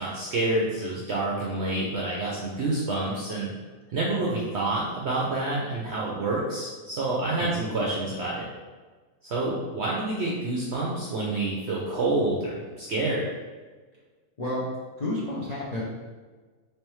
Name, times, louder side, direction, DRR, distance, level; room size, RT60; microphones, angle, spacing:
voice 1, 0.0-3.5 3.9-8.5 9.2-13.2, right 2 dB, 70° right, -4 dB, 0.6 m, -28 dB
voice 2, 7.4-7.7 14.4-14.7 15.0-15.8, left 1 dB, 80° left, -7 dB, 0.3 m, -31 dB
3.3 x 3.3 x 3.0 m, 1.4 s
omnidirectional pair, 1.7 m